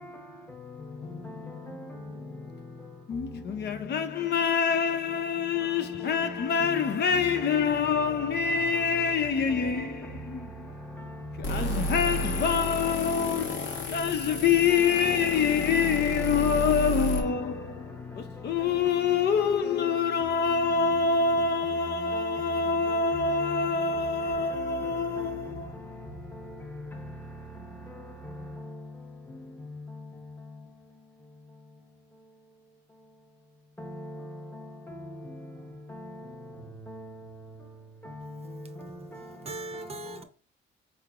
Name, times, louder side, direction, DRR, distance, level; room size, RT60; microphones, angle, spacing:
voice 1, 1.0-1.9 3.1-10.7 11.5-17.7 18.2-25.7, left 6 dB, 55° left, 0.5 m, -26 dB
voice 2, 1.9-2.2 5.6-6.4 6.9-7.0 8.5-9.1 14.7-15.0 22.1-22.4 23.4-23.6 24.6-24.9 25.2-25.3 33.8-35.0 35.9-36.1 36.9-37.1 38.0-38.1 38.8-38.9 39.5-39.6, left 1 dB, 10° left, 0.9 m, -41 dB
sound 1, 11.4-17.2, equal, 75° left, 1.2 m, -32 dB
voice 3, 38.2-38.6 39.2-40.2, right 2 dB, 30° right, 0.6 m, -41 dB
4.8 x 3.2 x 2.4 m
cardioid pair, 90°, 20 cm